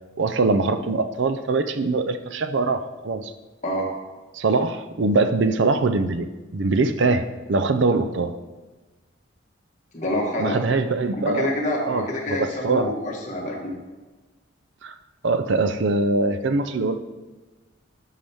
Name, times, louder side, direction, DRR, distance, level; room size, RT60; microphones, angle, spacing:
voice 1, 0.2-3.3 4.3-6.3 6.5-8.3 10.4-11.5 11.9-12.0 12.3-12.9 14.8-14.9 15.2-16.9, right 3 dB, 65° right, 9 dB, 0.5 m, -22 dB
voice 2, 9.9-10.6 11.2-13.8, left 1 dB, 35° left, -2 dB, 1.6 m, -27 dB
11.5 x 5.6 x 3.5 m, 1.2 s
head